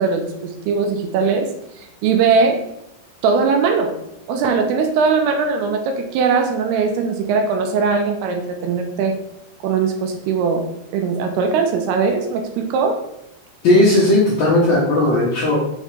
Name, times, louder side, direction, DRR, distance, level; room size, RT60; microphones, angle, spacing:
voice 1, 0.0-2.6 3.2-3.9 4.3-9.2 9.6-10.7 10.9-13.0, right 5 dB, 85° right, 4 dB, 2.6 m, -20 dB
voice 2, 13.6-15.6, left 1 dB, 60° left, -6 dB, 2.0 m, -15 dB
6.5 x 3.6 x 4.9 m, 0.81 s
omnidirectional pair, 4.6 m